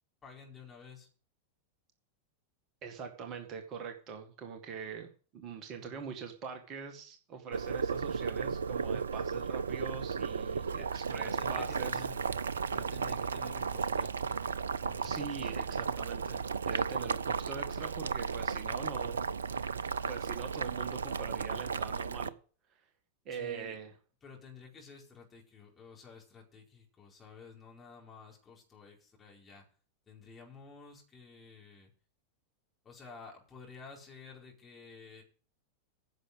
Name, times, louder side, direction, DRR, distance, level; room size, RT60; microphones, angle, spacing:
voice 1, 0.2-1.1 5.7-6.1 11.2-12.2 12.7-14.4 14.8-15.6 23.3-23.8 24.2-29.7 30.1-31.9 32.8-35.2, left 5 dB, 20° left, -2 dB, 4.5 m, -52 dB
voice 2, 2.8-12.0 15.0-19.2 19.5-19.7 20.1-22.3 23.3-23.9, right 6 dB, 35° right, 5 dB, 1.9 m, -43 dB
Boiling, 7.5-22.3, right 5 dB, 70° right, 0.5 m, -34 dB
10.5 x 6.7 x 8.1 m, 0.41 s
figure-of-eight pair, 90°, 0 cm